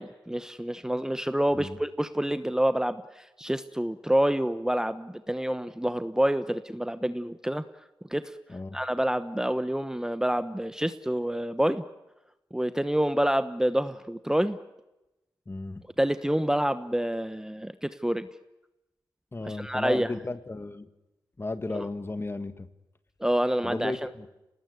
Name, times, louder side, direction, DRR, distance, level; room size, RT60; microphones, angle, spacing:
voice 1, 0.0-7.6 8.1-8.4 8.7-11.8 12.5-14.6 16.0-18.3 19.4-20.1 21.7-21.8 23.2-24.1, right 1 dB, 5° right, 11 dB, 1.1 m, -27 dB
voice 2, 15.5-15.8 19.3-20.9 21.4-22.7 23.6-24.3, left 2 dB, 25° left, 11 dB, 1.9 m, -34 dB
26.5 x 19.5 x 9.7 m, 0.97 s
cardioid pair, 55°, 9 cm